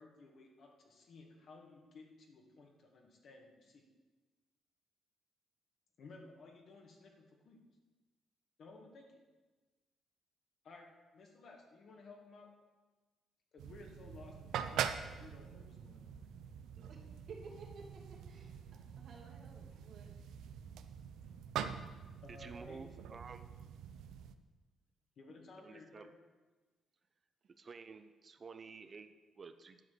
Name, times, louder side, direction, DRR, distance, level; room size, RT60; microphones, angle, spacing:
voice 1, 0.0-3.8 6.0-7.6 8.6-9.2 10.6-12.5 13.5-16.3 19.7-19.8 21.2-21.3 22.2-23.0 25.2-26.1, left 3 dB, 60° left, 1 dB, 1.9 m, -56 dB
sound 1, 13.6-24.3, right 8 dB, 85° right, 0.5 m, -44 dB
voice 2, 16.7-20.1, right 4 dB, 60° right, -1 dB, 2.4 m, -54 dB
voice 3, 22.3-23.5 25.6-26.1 27.6-29.8, right 4 dB, 40° right, 10 dB, 0.6 m, -52 dB
10.5 x 5.0 x 7.8 m, 1.3 s
cardioid pair, 90°, 0 cm